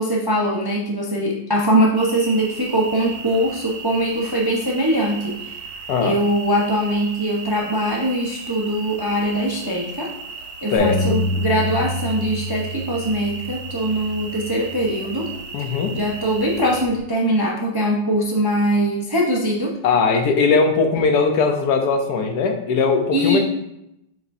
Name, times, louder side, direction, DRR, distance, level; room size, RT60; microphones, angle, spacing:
voice 1, 0.0-5.5 6.0-10.1 10.6-15.3 15.9-19.8 23.1-23.4, right 1 dB, 30° right, -3 dB, 0.4 m, -22 dB
sound 1, 1.9-16.9, right 5 dB, 65° right, 1.2 m, -36 dB
voice 2, 5.9-6.2 10.7-11.0 15.5-16.0 19.8-23.4, left 4 dB, 65° left, 5 dB, 1.2 m, -19 dB
Bass guitar, 10.8-15.2 15.8-17.0, left 1 dB, 25° left, 1.7 m, -29 dB
7.4 x 5.6 x 2.6 m, 0.82 s
omnidirectional pair, 2.0 m